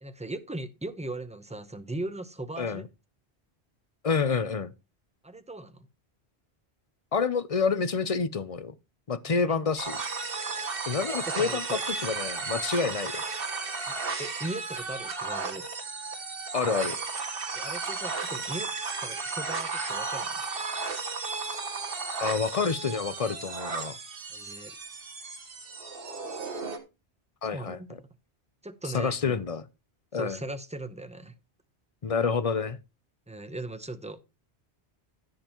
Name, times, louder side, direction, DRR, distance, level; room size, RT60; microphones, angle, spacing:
voice 1, 0.0-2.8 5.2-5.9 9.2-9.6 11.2-11.8 13.9-15.7 17.5-18.7 19.0-20.3 24.3-24.7 27.5-28.0 28.6-29.4 30.1-31.3 33.3-34.2, right 2 dB, 5° right, 0.7 m, -38 dB
voice 2, 4.0-4.7 7.1-8.7 9.1-10.0 10.9-13.2 16.5-17.0 22.2-24.0 27.4-27.8 28.9-29.6 30.1-30.4 32.0-32.8, left 5 dB, 40° left, 0.6 m, -28 dB
sound 1, 9.8-26.8, right 4 dB, 60° right, 1.6 m, -34 dB
15.0 x 7.5 x 3.0 m
omnidirectional pair, 1.1 m